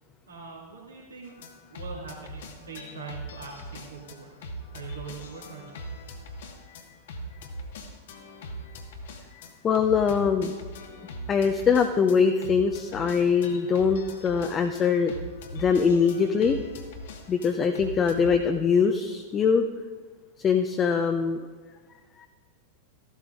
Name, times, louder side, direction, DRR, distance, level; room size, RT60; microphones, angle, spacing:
voice 1, 0.3-1.3 1.7-4.3 4.7-5.8, right 5 dB, 75° right, -5 dB, 2.4 m, -42 dB
sound 1, 1.2-18.4, equal, 60° left, 1.4 m, -41 dB
voice 2, 9.6-10.5 11.3-15.1 15.5-16.6 17.3-19.6 20.4-21.4, left 6 dB, 25° left, 5 dB, 0.7 m, -23 dB
14.0 x 12.5 x 3.7 m, 1.5 s
figure-of-eight pair, 90°, 0 cm